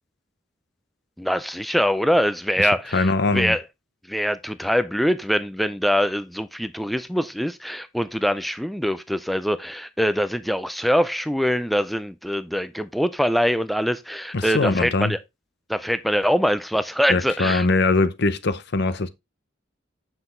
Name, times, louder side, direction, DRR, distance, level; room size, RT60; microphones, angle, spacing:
voice 1, 1.2-3.6 4.1-15.2 15.7-17.7, equal, ahead, 0.4 m, -23 dB
voice 2, 2.6-3.6 14.3-15.2 17.1-19.1, left 3 dB, 60° left, 0.8 m, -22 dB
7.8 x 5.9 x 3.8 m
head